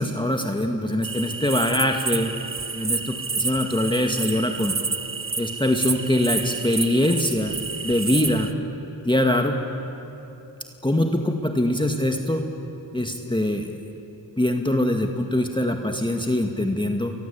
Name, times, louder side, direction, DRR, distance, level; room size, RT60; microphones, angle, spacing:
voice 1, 0.0-2.3 2.7-4.7 5.4-7.6 7.8-8.5 9.1-9.6 10.8-12.4 12.9-13.7 14.4-17.1, left 1 dB, 10° left, 3 dB, 1.9 m, -23 dB
sound 1, 1.0-8.5, right 4 dB, 30° right, 1.2 m, -29 dB
29.0 x 23.5 x 8.5 m, 2.9 s
cardioid pair, 65°, 46 cm